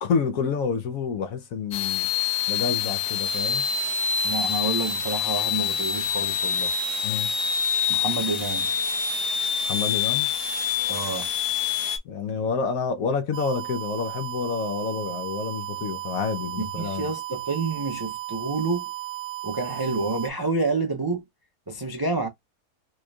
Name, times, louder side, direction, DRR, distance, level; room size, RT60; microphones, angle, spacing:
voice 1, 0.0-2.1 2.5-3.6 7.0-7.3 9.6-10.3 12.0-17.1, left 5 dB, 65° left, 1.1 m, -28 dB
sound 1, 1.7-12.0, left 6 dB, 90° left, 1.4 m, -26 dB
voice 2, 4.2-6.7 7.9-8.7 10.9-11.3 16.6-18.8 19.4-21.2 21.7-22.3, right 3 dB, 40° right, 0.3 m, -28 dB
sound 2, 13.3-20.3, right 15 dB, 80° right, 1.3 m, -35 dB
4.4 x 3.0 x 2.3 m
omnidirectional pair, 1.7 m